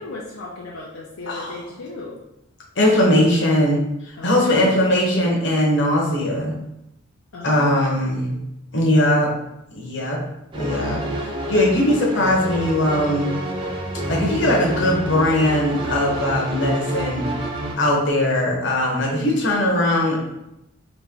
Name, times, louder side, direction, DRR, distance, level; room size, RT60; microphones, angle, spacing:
voice 1, 0.0-2.2 4.2-4.7 7.3-8.5, left 2 dB, 85° left, -3 dB, 0.5 m, -36 dB
voice 2, 2.8-6.5 7.4-8.3 8.7-9.3 9.7-10.2 10.5-13.3 14.1-17.3 17.8-20.2, left 1 dB, 60° left, -2 dB, 0.9 m, -20 dB
sound 1, 10.5-17.8, right 1 dB, 25° right, 0.5 m, -28 dB
2.9 x 2.9 x 3.6 m, 0.87 s
head